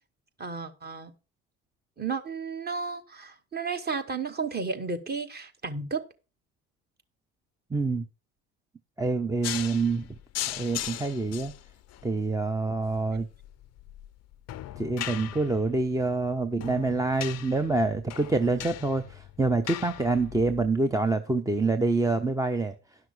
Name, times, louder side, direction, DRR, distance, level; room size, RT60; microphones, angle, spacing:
voice 1, 0.4-1.1 2.0-6.0, right 4 dB, 25° right, 1.4 m, -33 dB
voice 2, 7.7-8.0 9.0-10.1 10.5-11.5 12.0-13.3 14.8-22.7, right 3 dB, 10° right, 0.6 m, -26 dB
sound 1, 9.4-20.7, left 13 dB, 40° left, 0.5 m, -39 dB
11.0 x 6.0 x 4.8 m
hypercardioid pair, 65°, 40 cm